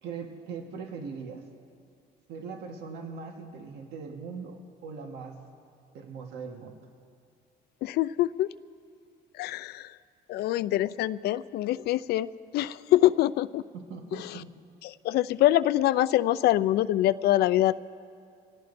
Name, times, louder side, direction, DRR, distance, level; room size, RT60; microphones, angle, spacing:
voice 1, 0.0-1.4 2.3-5.4 5.9-6.8 13.7-14.5, right 5 dB, 80° right, 3 dB, 1.4 m, -40 dB
voice 2, 7.8-8.5 9.3-10.0 10.3-13.6 14.1-14.4 14.8-17.7, left 14 dB, 70° left, 16 dB, 0.4 m, -25 dB
26.0 x 18.0 x 2.6 m, 2.3 s
cardioid pair, 110°, 17 cm